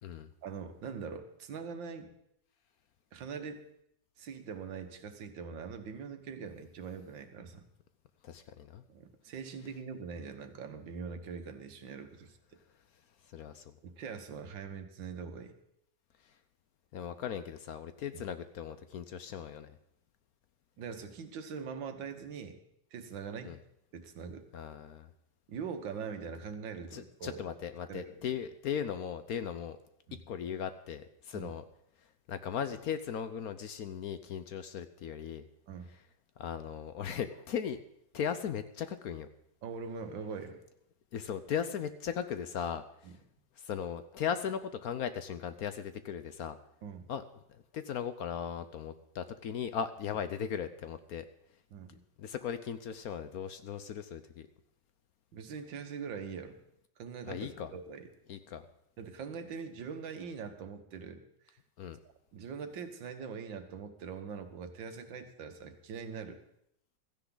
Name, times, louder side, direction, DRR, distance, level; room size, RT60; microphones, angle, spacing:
voice 1, 0.4-2.1 3.1-3.6 4.2-7.7 8.9-12.4 13.8-15.6 18.1-18.2 20.8-22.6 22.9-23.6 23.9-24.4 25.5-27.5 27.9-28.3 30.1-30.2 31.3-31.6 35.7-35.9 39.6-40.6 43.0-43.1 46.8-47.1 51.7-52.0 55.3-56.6 57.0-58.1 59.0-61.6 62.3-66.4, right 6 dB, 85° right, 7 dB, 1.9 m, -42 dB
voice 2, 8.2-8.8 13.3-13.6 16.9-19.7 23.4-23.6 24.5-25.1 26.9-29.8 30.3-31.6 32.3-35.4 36.4-37.8 38.1-39.3 41.1-43.1 43.6-46.6 47.1-47.2 47.5-51.2 52.2-54.5 57.3-57.7 58.3-58.6 61.8-62.0, left 8 dB, 65° left, 11 dB, 1.0 m, -37 dB
16.0 x 14.0 x 3.9 m, 0.76 s
omnidirectional pair, 2.0 m